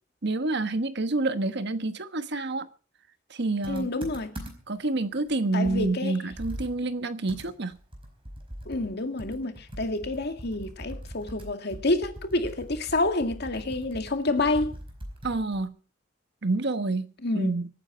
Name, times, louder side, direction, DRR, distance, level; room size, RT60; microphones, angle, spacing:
voice 1, 0.2-2.7 3.3-3.9 4.7-7.8 15.2-15.7 16.4-17.7, right 2 dB, 60° right, 1.3 m, -28 dB
Computer keyboard, 3.6-4.8 5.2-5.3 5.6-8.9 9.2-15.7, equal, 30° right, 4.7 m, -42 dB
voice 2, 3.7-4.3 5.5-6.1 8.7-14.7 17.2-17.5, left 2 dB, 60° left, 2.1 m, -28 dB
24.5 x 9.5 x 4.5 m
head